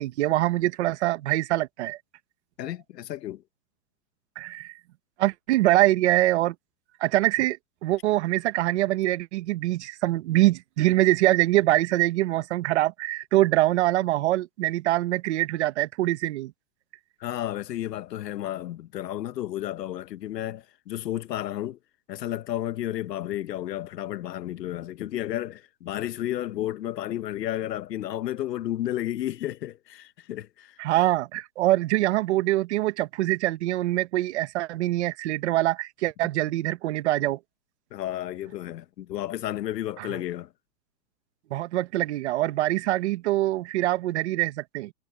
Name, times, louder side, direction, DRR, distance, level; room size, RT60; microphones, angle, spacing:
voice 1, 0.0-2.0 4.4-4.7 5.2-6.5 7.0-16.5 30.8-37.4 40.0-40.1 41.5-44.9, right 16 dB, 45° right, 1.3 m, -24 dB
voice 2, 2.6-3.4 17.2-21.8 22.1-30.8 37.9-40.5, left 13 dB, 80° left, 1.2 m, -32 dB
hypercardioid pair, 165°, 48 cm